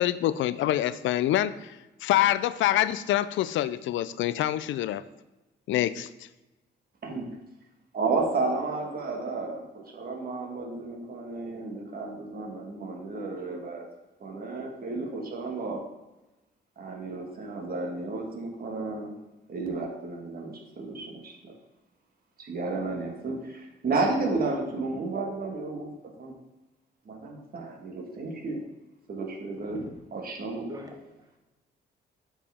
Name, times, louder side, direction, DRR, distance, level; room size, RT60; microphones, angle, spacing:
voice 1, 0.0-5.0 5.7-6.1, left 13 dB, 75° left, 15 dB, 0.4 m, -25 dB
voice 2, 7.9-13.9 14.2-15.8 16.8-19.1 19.5-21.5 22.4-25.9 26.2-26.3 27.1-28.6 29.1-29.8 30.1-30.7, right 3 dB, 50° right, 2 dB, 1.6 m, -32 dB
voice 3, 29.7-31.3, equal, 20° right, 2 dB, 1.5 m, -45 dB
8.4 x 5.0 x 3.5 m, 1.0 s
cardioid pair, 90°, 20 cm